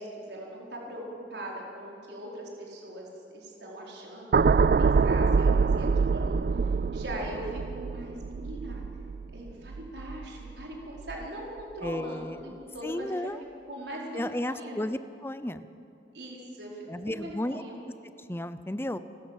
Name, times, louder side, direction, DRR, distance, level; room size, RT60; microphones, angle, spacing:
voice 1, 0.0-8.8 9.3-13.3 13.7-14.8 16.1-17.8, right 1 dB, 80° right, -2 dB, 4.6 m, -40 dB
sound 1, 4.3-10.6 11.0-11.3, right 5 dB, 55° right, 0.4 m, -25 dB
voice 2, 11.8-13.4 14.1-15.6 16.9-17.6 18.0-19.0, left 1 dB, 15° left, 12 dB, 0.7 m, -34 dB
30.0 x 13.5 x 7.5 m, 2.7 s
head